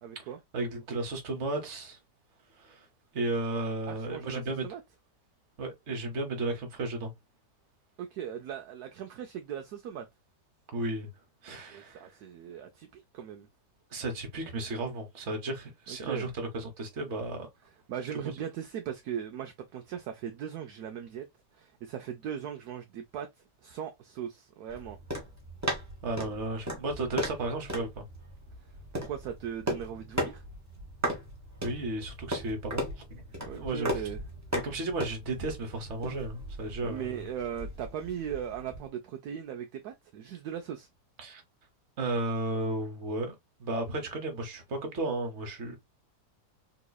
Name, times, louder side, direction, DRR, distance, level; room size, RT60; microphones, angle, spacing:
voice 1, 0.0-0.4 3.9-4.8 8.0-10.1 11.7-13.5 15.9-16.3 17.9-21.3 21.5-23.3 23.6-25.0 28.6-30.4 33.4-34.2 36.8-40.9, right 9 dB, 75° right, 1.0 m, -38 dB
voice 2, 0.5-2.0 2.6-2.9 3.1-4.6 5.6-7.1 10.7-11.1 11.4-12.1 13.9-17.5 26.0-28.0 31.6-33.2 33.5-33.9 34.6-37.2 41.2-41.4 42.0-43.3 43.6-45.8, right 2 dB, 45° right, 1.3 m, -34 dB
sound 1, 24.7-38.9, equal, 10° right, 1.0 m, -37 dB
3.9 x 2.9 x 2.2 m
omnidirectional pair, 1.8 m